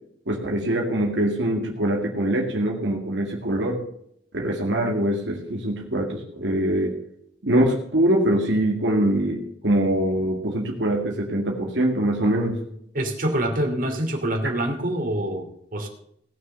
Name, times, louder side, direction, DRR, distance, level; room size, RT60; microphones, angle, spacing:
voice 1, 0.3-3.8 4.3-6.9 7.4-12.6, right 1 dB, 75° right, -1 dB, 2.2 m, -23 dB
voice 2, 12.9-15.9, right 1 dB, 50° right, 2 dB, 2.9 m, -26 dB
18.5 x 6.6 x 6.8 m, 0.72 s
head